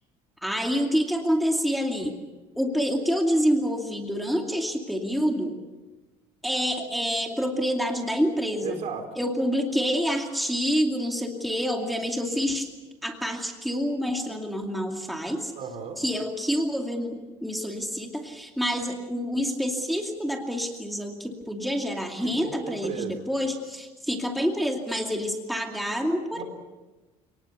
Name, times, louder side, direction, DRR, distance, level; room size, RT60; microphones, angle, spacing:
voice 1, 0.4-2.1 2.6-5.6 6.4-8.8 9.2-12.7 13.0-15.5 16.0-26.4, equal, ahead, 2 dB, 2.5 m, -27 dB
voice 2, 8.6-9.1 15.6-16.0 22.2-23.3 26.3-26.4, right 6 dB, 50° right, 7 dB, 4.2 m, -35 dB
29.5 x 19.0 x 7.0 m, 1.2 s
cardioid pair, 115°, 14 cm